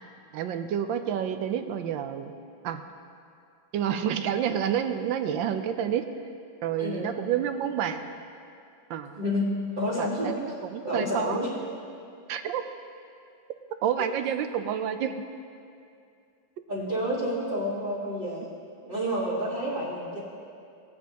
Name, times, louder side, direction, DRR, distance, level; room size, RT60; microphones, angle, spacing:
voice 1, 0.3-2.3 2.6-2.8 3.7-6.1 6.6-8.1 8.9-9.2 9.9-11.4 12.3-12.6 13.8-15.2, right 9 dB, 75° right, 8 dB, 1.3 m, -29 dB
voice 2, 6.8-7.1 9.1-9.5 9.8-10.4 10.8-11.5 16.7-18.5 18.8-20.2, equal, 25° right, -9 dB, 1.5 m, -29 dB
18.0 x 9.3 x 2.9 m, 2.5 s
omnidirectional pair, 2.2 m